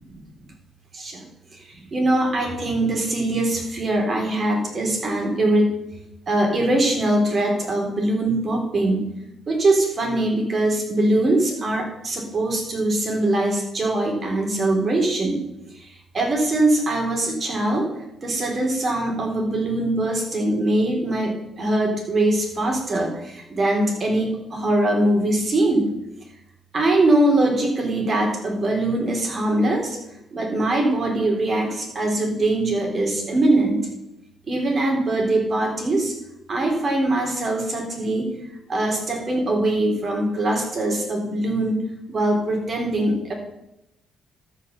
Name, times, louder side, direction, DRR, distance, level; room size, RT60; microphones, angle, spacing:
voice 1, 0.9-1.2 1.5-5.7 6.3-9.1 9.5-15.4 15.7-17.9 18.2-25.9 26.7-30.0 30.3-33.9 34.5-36.1 36.5-38.3 38.7-43.3, right 1 dB, 40° right, 1 dB, 3.3 m, -22 dB
13.0 x 5.2 x 6.7 m, 0.86 s
cardioid pair, 90°, 0 cm